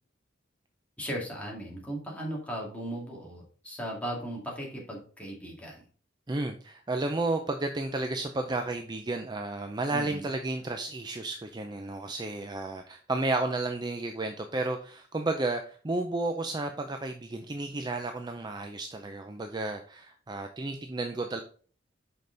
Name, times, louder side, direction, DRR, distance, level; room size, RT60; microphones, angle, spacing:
voice 1, 1.0-5.8 9.9-10.3, right 1 dB, 5° left, -3 dB, 2.2 m, -37 dB
voice 2, 6.3-21.4, right 2 dB, 20° right, 5 dB, 0.5 m, -32 dB
5.9 x 5.3 x 3.9 m, 0.42 s
head